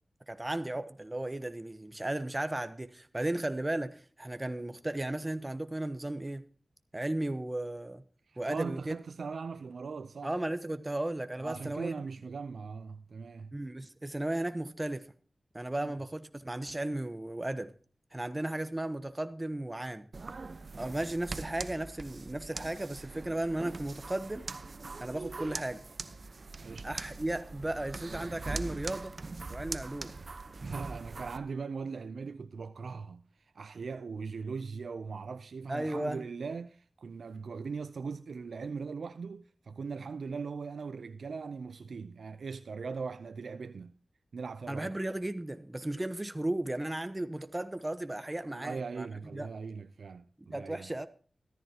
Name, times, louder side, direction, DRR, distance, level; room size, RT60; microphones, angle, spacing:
voice 1, 0.3-6.4 6.9-8.0 8.4-8.9 10.2-11.9 13.5-15.1 15.5-17.7 18.1-20.0 20.7-24.5 25.0-25.8 26.8-29.2 29.5-30.2 35.7-36.2 44.7-49.1 49.3-49.5 50.4-51.1, right 1 dB, 25° right, 1.0 m, -35 dB
voice 2, 8.3-10.4 11.4-13.5 15.8-15.9 26.6-26.9 30.6-43.9 44.3-44.9 48.4-50.9, right 5 dB, 85° right, 0.5 m, -40 dB
sound 1, 20.1-31.4, right 3 dB, 60° right, 0.9 m, -42 dB
14.0 x 14.0 x 2.9 m
cardioid pair, 55°, 0 cm